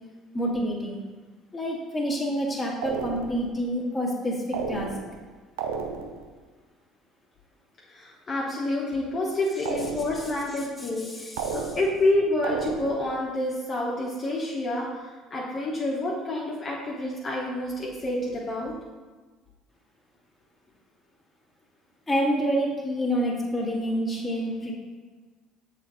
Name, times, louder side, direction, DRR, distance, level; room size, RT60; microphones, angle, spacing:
voice 1, 0.3-1.0 1.5-4.9 10.8-11.6 22.1-24.7, equal, 10° left, -3 dB, 1.6 m, -28 dB
sound 1, 2.8-3.5 4.5-5.2 5.6-6.3 9.6-10.4 11.4-12.1 12.4-13.2, right 6 dB, 80° right, 0.4 m, -33 dB
voice 2, 7.9-18.7, left 1 dB, 35° left, -5 dB, 1.1 m, -28 dB
6.9 x 3.4 x 4.0 m, 1.3 s
hypercardioid pair, 65°, 0 cm